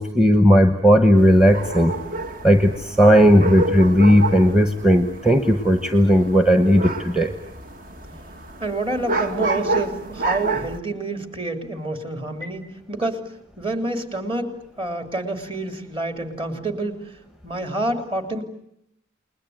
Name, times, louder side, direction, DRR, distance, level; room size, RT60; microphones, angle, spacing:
voice 1, 0.0-1.9 2.4-7.3, equal, 5° right, 7 dB, 1.2 m, -15 dB
sound 1, 1.2-10.8, right 2 dB, 45° right, 1.7 m, -29 dB
voice 2, 8.6-13.2 13.6-17.1 17.4-18.4, right 2 dB, 25° right, 6 dB, 3.2 m, -28 dB
30.0 x 20.5 x 9.4 m, 0.77 s
head